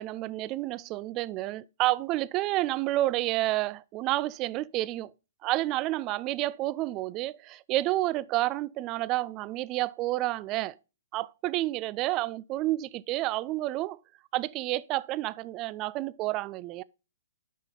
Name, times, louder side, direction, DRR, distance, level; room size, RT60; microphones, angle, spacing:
voice 1, 0.0-5.1 5.4-10.8 11.1-14.0 14.3-16.8, right 17 dB, 30° right, 0.3 m, -30 dB
9.1 x 5.6 x 3.7 m
figure-of-eight pair, 125°, 0 cm